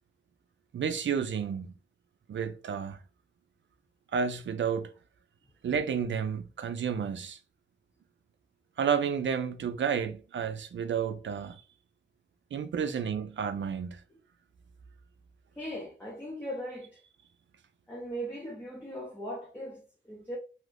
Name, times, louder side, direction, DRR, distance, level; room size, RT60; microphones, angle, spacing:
voice 1, 0.7-1.8 2.3-3.0 4.1-4.9 5.6-7.4 8.8-11.6 12.5-14.0, right 7 dB, 80° right, 0.4 m, -31 dB
voice 2, 15.6-17.0 17.9-20.4, equal, 10° left, 0.8 m, -39 dB
2.8 x 2.5 x 3.3 m
wide cardioid pair, 120°, 19 cm